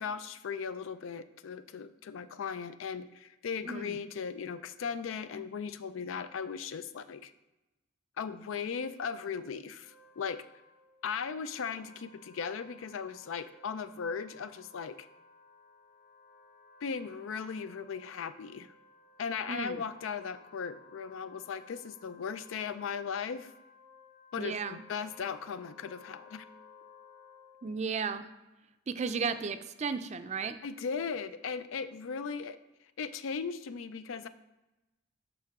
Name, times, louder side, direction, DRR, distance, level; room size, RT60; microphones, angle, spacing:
voice 1, 0.0-7.3 8.2-10.4 11.0-15.1 16.8-18.7 19.2-23.5 24.3-26.5 30.6-32.6 33.0-34.3, left 6 dB, 85° left, 13 dB, 0.4 m, -37 dB
voice 2, 3.7-4.0 19.5-19.8 24.4-24.8 27.6-28.3 28.9-30.5, right 5 dB, 35° right, 10 dB, 0.4 m, -34 dB
Wind instrument woodwind instrument, 9.8-27.9, left 4 dB, 55° left, 1.2 m, -58 dB
11.0 x 3.9 x 3.6 m, 1.0 s
head